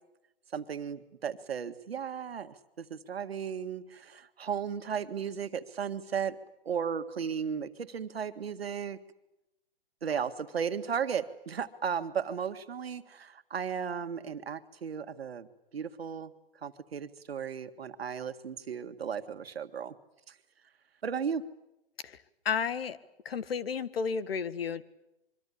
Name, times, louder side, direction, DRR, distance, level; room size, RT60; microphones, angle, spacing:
voice 1, 0.5-6.4 6.7-9.0 10.0-15.5 15.7-16.3 16.6-19.9 20.3-20.4 21.0-21.4, right 7 dB, 90° right, 10 dB, 1.9 m, -35 dB
voice 2, 22.5-23.0 23.3-24.8, left 6 dB, 80° left, 15 dB, 1.7 m, -32 dB
25.5 x 24.0 x 8.6 m, 0.91 s
hypercardioid pair, 145°, 29 cm